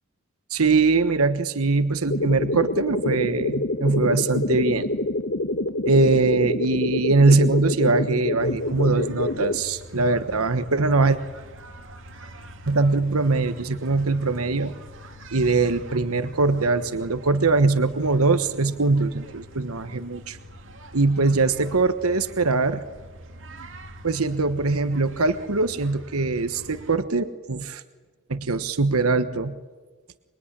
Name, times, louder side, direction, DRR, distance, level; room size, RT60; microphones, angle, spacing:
voice 1, 0.5-4.9 5.8-11.2 12.7-14.7 15.3-20.4 20.9-22.8 24.0-27.8 28.3-29.5, right 3 dB, 90° right, 10 dB, 1.3 m, -22 dB
sound 1, 2.1-9.6, left 2 dB, 60° left, 1.3 m, -27 dB
sound 2, 8.4-27.0, equal, 60° right, 2.8 m, -44 dB
26.0 x 22.5 x 10.0 m, 1.3 s
head